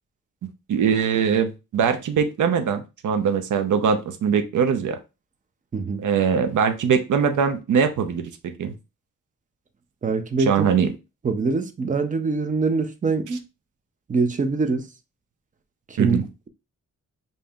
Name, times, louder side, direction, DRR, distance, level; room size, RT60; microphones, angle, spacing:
voice 1, 0.7-5.0 6.0-8.7 10.5-10.9 16.0-16.2, right 7 dB, 65° right, 0.6 m, -22 dB
voice 2, 5.7-6.0 10.0-10.7 11.2-13.4 14.1-14.9 15.9-16.2, right 4 dB, 25° right, 0.4 m, -23 dB
5.1 x 2.7 x 2.3 m
wide cardioid pair, 175°, 32 cm